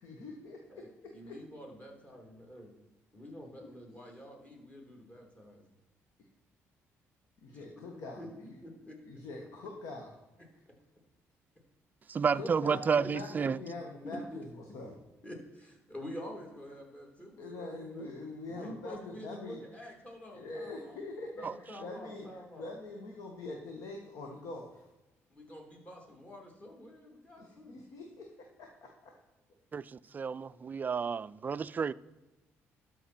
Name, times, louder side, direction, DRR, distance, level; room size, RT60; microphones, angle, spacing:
voice 1, 0.0-0.6 1.3-1.4 7.4-8.2 9.1-10.1 12.3-15.0 17.4-19.6 20.3-22.2 22.6-24.9 27.4-28.3 28.6-29.1, left 2 dB, 75° left, 1.5 m, -43 dB
voice 2, 0.7-2.8 3.1-5.6 7.5-7.6 7.9-9.7 14.0-14.4 15.2-18.1 18.5-21.0 21.4-22.6 25.3-27.8, equal, 25° left, 2.9 m, -47 dB
voice 3, 12.1-13.6 21.4-21.5 29.7-31.9, right 6 dB, 30° right, 0.3 m, -31 dB
12.5 x 5.9 x 4.4 m
cardioid pair, 95°, 5 cm